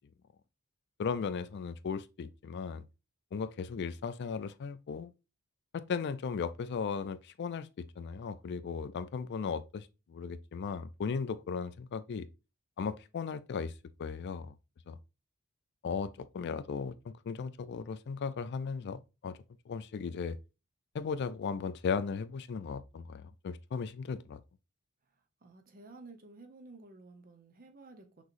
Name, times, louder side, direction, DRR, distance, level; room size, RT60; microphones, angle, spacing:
voice 1, 1.0-2.8 3.3-5.1 5.7-12.3 12.8-13.7 14.0-14.5 14.9-15.0 15.8-19.4 19.7-20.4 20.9-24.4, left 5 dB, 50° left, 0.3 m, -36 dB
voice 2, 25.4-28.2, right 3 dB, 40° right, 0.8 m, -53 dB
6.1 x 3.0 x 2.5 m
head